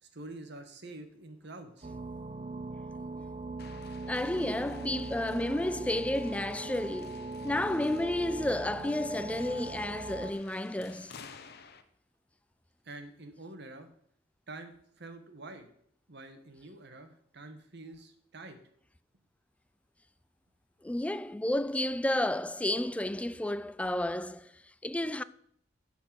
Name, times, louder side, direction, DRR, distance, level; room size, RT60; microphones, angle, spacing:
voice 1, 0.0-1.9 12.8-13.9 14.5-15.7 16.1-18.6, right 2 dB, 60° right, 1.4 m, -47 dB
sound 1, 1.8-10.3, right 2 dB, 35° right, 0.6 m, -40 dB
sound 2, 3.6-11.8, left 6 dB, 55° left, 0.8 m, -54 dB
voice 2, 4.1-11.1 20.8-25.2, left 1 dB, 5° left, 0.3 m, -31 dB
10.5 x 4.5 x 7.5 m
head